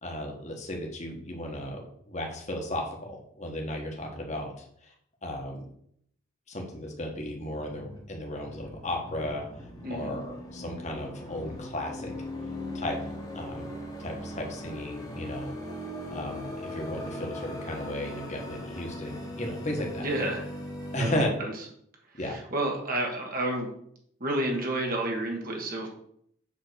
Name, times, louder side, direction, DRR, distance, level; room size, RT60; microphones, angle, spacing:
voice 1, 0.0-4.9 5.2-5.6 6.5-9.4 9.9-12.1 12.7-15.5 16.1-20.0 20.9-21.3 22.1-22.4, left 1 dB, 35° left, 1 dB, 1.5 m, -35 dB
sound 1, 7.2-21.2, left 1 dB, 20° left, 1.4 m, -39 dB
voice 2, 9.8-10.2 20.0-20.4 21.0-21.5 22.1-23.7 24.2-25.9, right 1 dB, 45° right, 1 dB, 1.5 m, -30 dB
7.5 x 3.8 x 6.3 m, 0.68 s
head